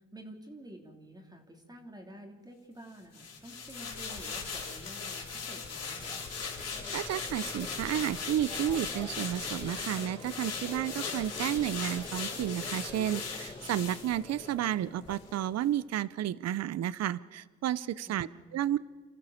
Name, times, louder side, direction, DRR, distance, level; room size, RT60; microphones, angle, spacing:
voice 1, 0.0-6.2 18.1-18.5, right 1 dB, 15° right, 2 dB, 3.1 m, -50 dB
sound 1, 3.1-14.7 15.1-15.2, left 5 dB, 55° left, 4.4 m, -39 dB
Crowd, 5.9-16.0, left 2 dB, 15° left, 1.8 m, -46 dB
voice 2, 6.9-18.8, right 11 dB, 60° right, 19 dB, 0.7 m, -32 dB
29.0 x 13.5 x 7.2 m, 1.5 s
cardioid pair, 90°, 30 cm